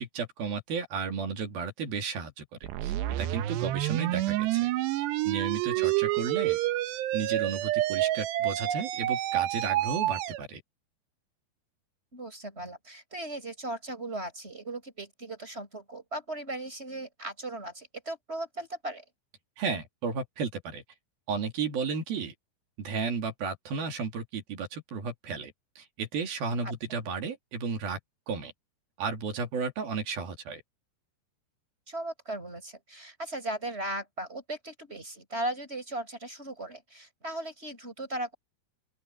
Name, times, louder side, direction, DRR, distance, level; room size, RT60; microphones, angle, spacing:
voice 1, 0.0-2.5 2.8-4.6 5.3-6.6 7.1-10.6 19.6-20.8 21.3-22.3 22.8-28.0 28.3-28.5 29.0-30.6, right 5 dB, 60° right, 4.5 m, -33 dB
sound 1, 2.6-10.4, right 15 dB, 80° right, 3.1 m, -28 dB
voice 2, 12.1-19.0 26.6-26.7 31.9-38.3, right 1 dB, 15° right, 6.0 m, -37 dB
open air
omnidirectional pair, 5.1 m